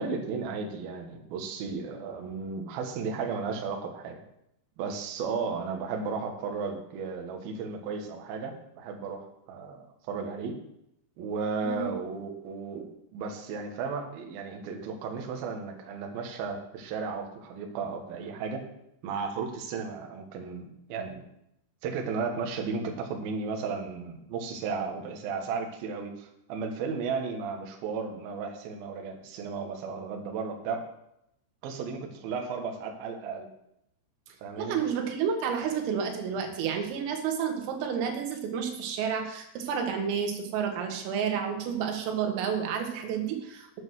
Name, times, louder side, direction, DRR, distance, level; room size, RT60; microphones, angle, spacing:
voice 1, 0.0-4.2 4.8-10.6 11.2-18.7 19.0-21.2 21.8-30.9 31.6-33.5 34.4-34.8, right 5 dB, 65° right, 3 dB, 2.6 m, -34 dB
voice 2, 34.6-43.8, right 7 dB, 80° right, 4 dB, 4.1 m, -30 dB
9.5 x 7.8 x 6.4 m, 0.79 s
omnidirectional pair, 5.9 m